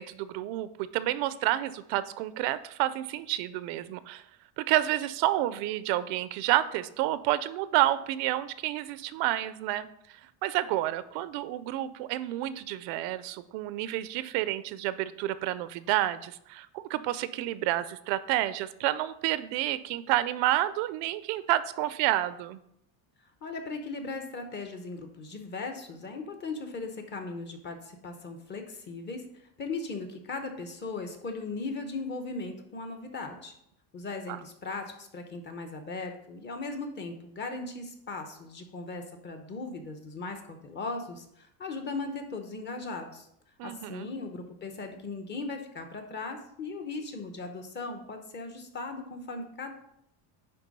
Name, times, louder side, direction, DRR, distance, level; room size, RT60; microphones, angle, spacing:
voice 1, 0.0-4.2 4.6-22.6 34.3-34.4 43.6-44.1, right 14 dB, 75° right, 15 dB, 0.6 m, -29 dB
voice 2, 23.4-33.5 33.9-43.3 43.6-49.7, left 3 dB, 25° left, 5 dB, 0.8 m, -38 dB
9.9 x 3.6 x 5.3 m, 0.74 s
cardioid pair, 180°, 44 cm